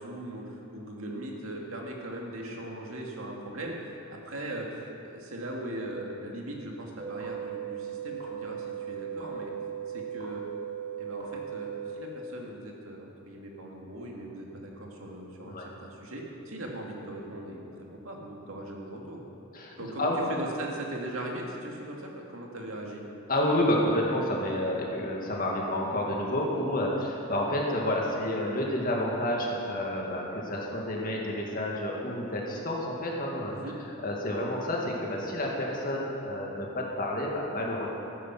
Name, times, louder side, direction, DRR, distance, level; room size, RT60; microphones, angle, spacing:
voice 1, 0.0-9.5 9.9-10.4 11.0-19.2 19.8-23.0 33.5-33.8, right 1 dB, 85° right, -1 dB, 2.2 m, -39 dB
sound 1, 7.0-11.9, right 8 dB, 30° right, 3.8 m, -37 dB
voice 2, 19.5-20.2 23.3-33.5 34.0-37.9, left 1 dB, 45° left, -2 dB, 2.2 m, -29 dB
14.5 x 10.0 x 6.1 m, 2.8 s
head